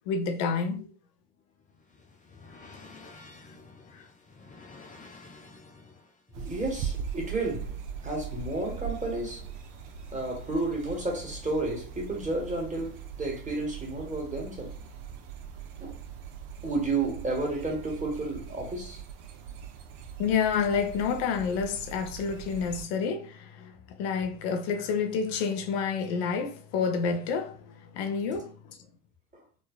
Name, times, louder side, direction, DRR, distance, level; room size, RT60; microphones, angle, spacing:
voice 1, 0.1-0.9 3.9-4.0 20.2-28.8, left 6 dB, 70° left, 0.7 m, -29 dB
sound 1, 1.2-6.3, left 3 dB, 15° left, 0.5 m, -51 dB
voice 2, 6.3-9.6 10.1-14.8 15.8-16.0 16.6-19.0 29.3-29.4, right 2 dB, 15° right, 1.4 m, -32 dB
sound 2, 6.3-22.9, right 8 dB, 55° right, 0.7 m, -41 dB
3.2 x 2.2 x 2.3 m
hypercardioid pair, 70°, 48 cm